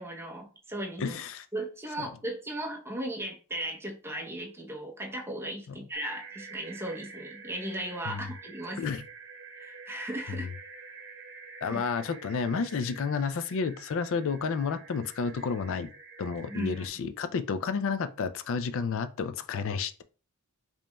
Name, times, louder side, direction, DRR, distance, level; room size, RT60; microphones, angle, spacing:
voice 1, 0.0-1.2 1.5-8.9 9.5-10.5 11.7-11.8 16.5-16.9, right 1 dB, 10° right, 0.7 m, -37 dB
voice 2, 1.0-1.5 5.7-5.8 8.1-8.3 8.8-9.0 10.3-10.5 11.6-15.9 16.2-20.0, left 5 dB, 60° left, 0.4 m, -31 dB
sound 1, 5.9-16.9, right 4 dB, 55° right, 1.0 m, -48 dB
5.2 x 3.1 x 2.2 m
head